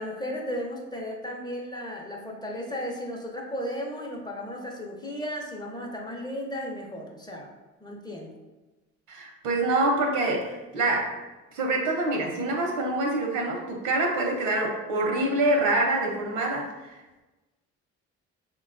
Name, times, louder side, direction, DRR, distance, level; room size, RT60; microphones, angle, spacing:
voice 1, 0.0-7.5 7.8-8.3, equal, 15° left, 0 dB, 0.5 m, -35 dB
voice 2, 9.1-11.2 11.5-16.7, right 2 dB, 90° right, 1 dB, 0.7 m, -25 dB
3.6 x 2.2 x 2.5 m, 1.1 s
cardioid pair, 95°, 30 cm